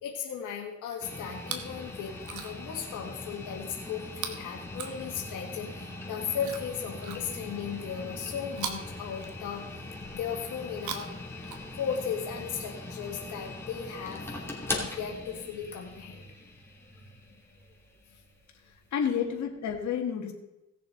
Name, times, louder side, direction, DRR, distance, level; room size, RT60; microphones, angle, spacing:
voice 1, 0.0-9.6 10.1-11.1 11.8-14.3 14.7-16.3, left 7 dB, 85° left, 1 dB, 1.7 m, -36 dB
sound 1, 1.0-19.1, left 2 dB, 10° left, 2.6 m, -41 dB
Chewing mastication, 1.3-1.8 2.1-2.8 4.1-5.5 6.4-7.6 8.5-9.8 10.7-12.1 13.0-13.1, right 7 dB, 80° right, 1.4 m, -41 dB
voice 2, 18.9-20.3, left 8 dB, 65° left, 2 dB, 1.8 m, -30 dB
17.5 x 6.9 x 3.9 m, 0.97 s
cardioid pair, 90°, 30 cm